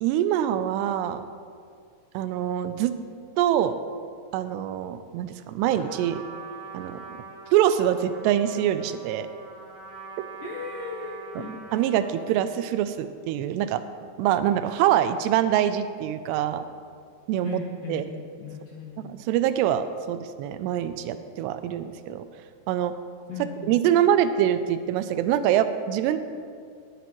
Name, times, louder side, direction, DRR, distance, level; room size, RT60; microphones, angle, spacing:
voice 1, 0.0-1.3 2.1-3.0 3.4-3.8 4.3-6.2 6.7-7.0 7.5-9.3 11.7-13.8 14.2-16.6 17.3-17.6 17.9-18.0 19.0-22.2 22.7-22.9 23.7-26.2, right 11 dB, 85° right, 11 dB, 2.6 m, -24 dB
Trumpet, 5.7-12.3, right 4 dB, 35° right, 4.3 m, -43 dB
voice 2, 10.4-11.5 17.4-19.1 23.3-23.7, left 4 dB, 80° left, -2 dB, 1.9 m, -37 dB
18.0 x 10.0 x 3.1 m, 2.3 s
omnidirectional pair, 5.0 m